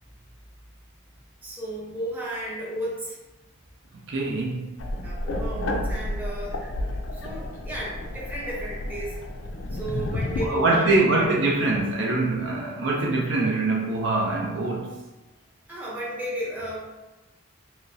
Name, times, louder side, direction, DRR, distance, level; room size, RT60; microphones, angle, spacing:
voice 1, 1.4-3.2 5.0-6.6 7.1-9.2 9.7-11.4 15.7-16.8, right 1 dB, 10° right, 0.7 m, -33 dB
voice 2, 4.1-4.8 10.4-15.0, right 2 dB, 55° right, 0.5 m, -24 dB
sound 1, 4.8-10.5, left 1 dB, 60° left, 0.4 m, -31 dB
3.1 x 3.1 x 2.6 m
head